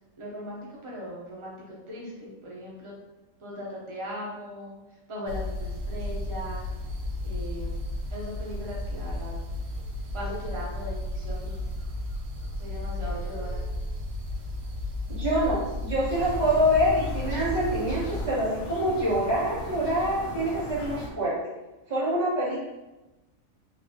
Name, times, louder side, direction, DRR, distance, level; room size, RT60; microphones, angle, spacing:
voice 1, 0.2-2.9 3.4-6.7 7.2-7.8 8.1-9.3 10.1-11.7 12.6-13.6, left 1 dB, 55° right, -4 dB, 0.3 m, -38 dB
sound 1, 5.3-18.3, left 1 dB, 85° right, 1.0 m, -33 dB
voice 2, 15.1-21.3 21.9-22.6, equal, 30° right, -9 dB, 1.3 m, -25 dB
sound 2, 16.1-21.1, equal, 70° left, 1.0 m, -38 dB
3.8 x 2.3 x 2.7 m, 1.1 s
omnidirectional pair, 1.5 m